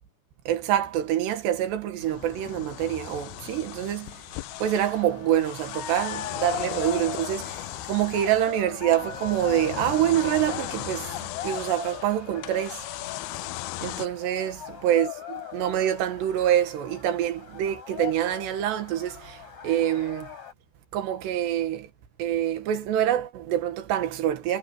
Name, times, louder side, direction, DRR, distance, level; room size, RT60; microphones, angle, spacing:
voice 1, 0.5-4.2 4.6-12.8 13.8-20.3 20.9-21.9 22.2-24.6, right 11 dB, 75° right, 3.8 m, -26 dB
sound 1, 2.0-14.1, left 18 dB, 80° left, 2.3 m, -38 dB
sound 2, 4.5-20.5, left 10 dB, 40° left, 6.4 m, -39 dB
omnidirectional pair, 5.0 m